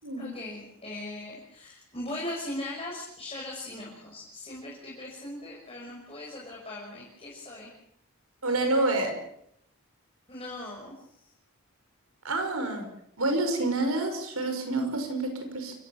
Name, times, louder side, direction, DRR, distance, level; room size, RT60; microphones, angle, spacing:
voice 1, 0.2-7.7 10.3-10.9, left 1 dB, 25° left, -4 dB, 6.1 m, -39 dB
voice 2, 8.4-9.1 12.2-12.9 13.2-15.7, right 2 dB, 75° right, 6 dB, 5.7 m, -28 dB
29.0 x 17.0 x 7.3 m, 0.74 s
head